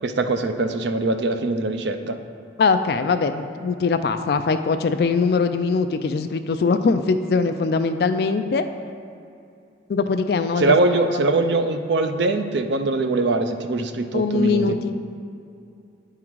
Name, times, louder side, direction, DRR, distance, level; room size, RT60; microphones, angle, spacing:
voice 1, 0.0-2.2 10.6-14.7, right 2 dB, 70° right, 7 dB, 0.5 m, -22 dB
voice 2, 2.6-8.7 9.9-10.6 14.1-14.9, left 4 dB, 55° left, 9 dB, 0.3 m, -21 dB
9.4 x 3.7 x 4.6 m, 2.5 s
head